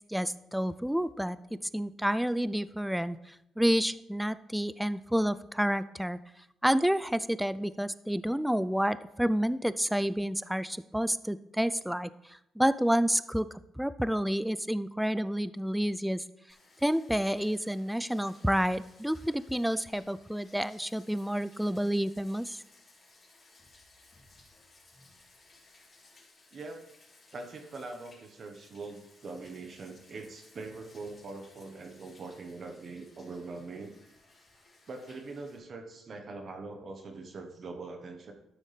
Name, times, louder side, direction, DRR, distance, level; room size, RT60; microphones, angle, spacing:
voice 1, 0.0-6.2 6.6-13.5 13.8-16.2 16.8-22.6, equal, 5° right, 15 dB, 0.4 m, -29 dB
Bathtub (filling or washing), 16.5-35.6, left 2 dB, 35° left, 3.3 m, -60 dB
voice 2, 26.5-26.9 27.3-33.9 34.9-38.3, right 3 dB, 50° right, 5 dB, 1.1 m, -43 dB
12.5 x 6.4 x 3.4 m, 0.86 s
cardioid pair, 90°, 0 cm